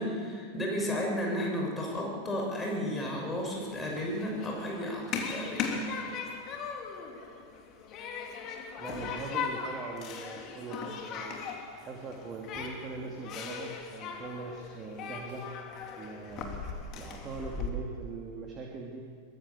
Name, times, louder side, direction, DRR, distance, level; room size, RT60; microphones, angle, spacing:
voice 1, 0.0-5.7, equal, 15° left, -1 dB, 6.8 m, -33 dB
Human group actions, 3.4-17.7, left 5 dB, 35° left, 3.1 m, -39 dB
voice 2, 8.8-11.4 11.8-15.4 16.0-16.7 16.9-19.1, right 4 dB, 25° right, 0 dB, 2.9 m, -41 dB
23.5 x 21.5 x 7.4 m, 2.1 s
figure-of-eight pair, 90°, 0 cm